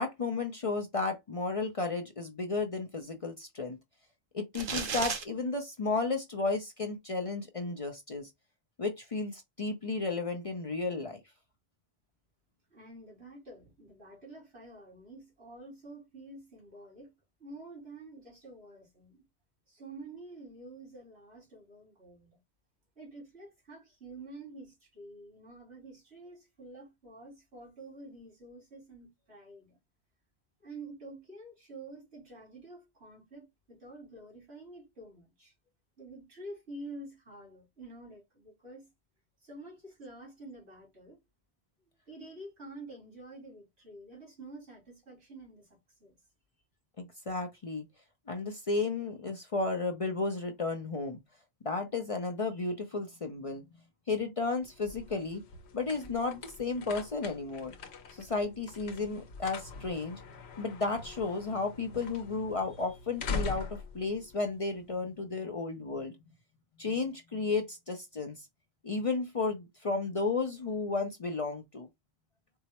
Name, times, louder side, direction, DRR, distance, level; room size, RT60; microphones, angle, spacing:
voice 1, 0.0-3.8 4.3-8.3 8.8-11.2 47.0-47.9 48.3-51.2 51.6-53.6 54.1-55.4 55.7-57.7 58.1-60.2 60.6-66.1 66.8-68.5 68.8-71.9, left 3 dB, 40° left, 0.6 m, -33 dB
sound 1, 4.6-5.2, right 5 dB, 60° right, 0.8 m, -33 dB
voice 2, 12.7-17.1 17.4-19.2 19.7-22.4 23.0-29.8 30.6-35.5 36.0-38.9 39.4-41.2 42.1-46.2, right 2 dB, 85° right, 2.8 m, -48 dB
sound 2, 54.5-65.2, left 4 dB, 85° left, 1.0 m, -43 dB
4.6 x 2.0 x 2.9 m
omnidirectional pair, 1.1 m